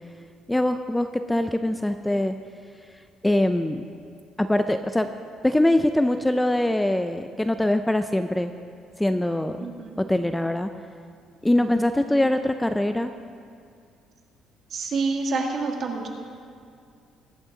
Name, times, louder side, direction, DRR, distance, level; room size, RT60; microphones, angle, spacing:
voice 1, 0.5-2.4 3.2-3.8 4.4-5.1 5.4-8.5 9.0-9.7 10.0-10.7 11.4-13.1, left 1 dB, 5° left, 8 dB, 0.4 m, -23 dB
voice 2, 9.6-9.9 11.6-11.9 14.7-16.1, right 4 dB, 45° right, 2 dB, 1.7 m, -28 dB
22.0 x 8.9 x 3.9 m, 2.3 s
cardioid pair, 150°, 0 cm